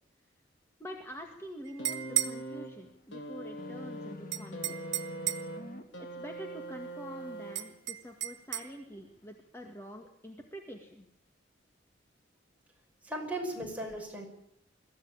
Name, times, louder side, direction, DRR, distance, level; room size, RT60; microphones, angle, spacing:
voice 1, 0.8-4.8 6.0-11.1, equal, 15° left, 2 dB, 1.9 m, -46 dB
sound 1, 1.7-2.4 4.3-5.6 7.6-8.7, right 13 dB, 85° right, 1.6 m, -33 dB
sound 2, 1.8-8.0 9.0-9.1, right 2 dB, 85° left, 3.6 m, -43 dB
sound 3, 3.6-5.8, left 2 dB, 50° left, 1.9 m, -45 dB
voice 2, 13.0-14.3, right 1 dB, 10° right, 0 dB, 5.6 m, -37 dB
23.0 x 14.5 x 8.9 m, 0.74 s
head